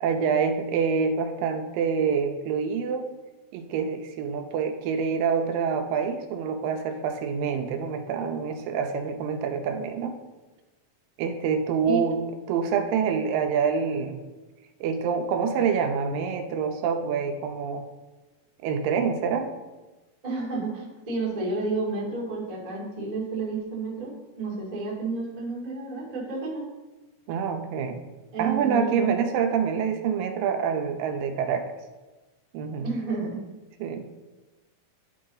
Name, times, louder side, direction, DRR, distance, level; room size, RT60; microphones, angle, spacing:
voice 1, 0.0-3.1 3.5-10.1 11.2-12.2 12.5-14.2 14.8-17.9 18.6-19.5 27.3-28.0 28.4-31.6 32.5-32.9 33.8-34.1, right 6 dB, 80° right, 5 dB, 2.3 m, -26 dB
voice 2, 20.2-26.7 28.3-29.1 32.8-33.4, right 3 dB, 55° right, -4 dB, 0.4 m, -31 dB
11.0 x 3.8 x 3.9 m, 1.2 s
omnidirectional pair, 4.1 m